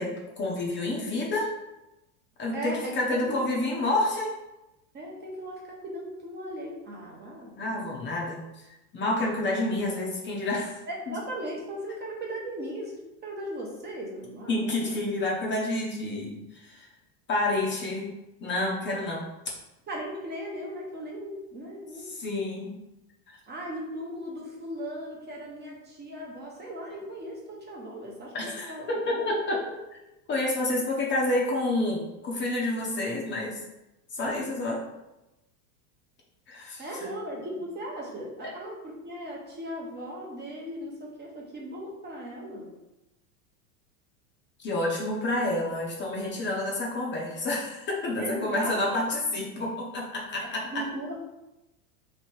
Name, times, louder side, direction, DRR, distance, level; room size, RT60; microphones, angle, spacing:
voice 1, 0.0-1.5 2.4-4.3 7.6-8.4 8.9-10.8 11.1-11.2 14.5-16.9 17.3-18.1 18.4-19.2 21.9-22.7 23.3-23.4 28.3-29.6 30.3-33.6 34.1-34.8 36.5-37.1 38.4-38.5 44.6-50.9, left 2 dB, 25° left, -2 dB, 0.8 m, -29 dB
voice 2, 2.5-3.0 3.3-3.5 4.9-8.1 10.9-14.9 19.9-22.1 23.5-29.3 36.8-42.7 48.2-49.0 50.7-51.2, equal, 25° right, -2 dB, 0.8 m, -37 dB
3.2 x 2.9 x 4.4 m, 0.95 s
supercardioid pair, 125°, 44 cm